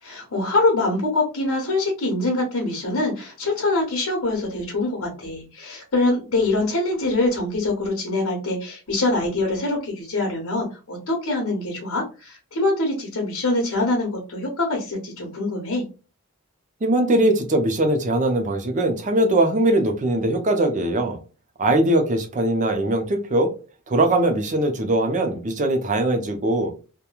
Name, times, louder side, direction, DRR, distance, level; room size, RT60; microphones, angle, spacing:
voice 1, 0.0-15.8, left 2 dB, 80° left, 1.0 m, -24 dB
voice 2, 16.8-21.2 21.6-23.5 23.9-26.7, right 1 dB, 35° right, 0.5 m, -21 dB
2.9 x 2.2 x 2.3 m
head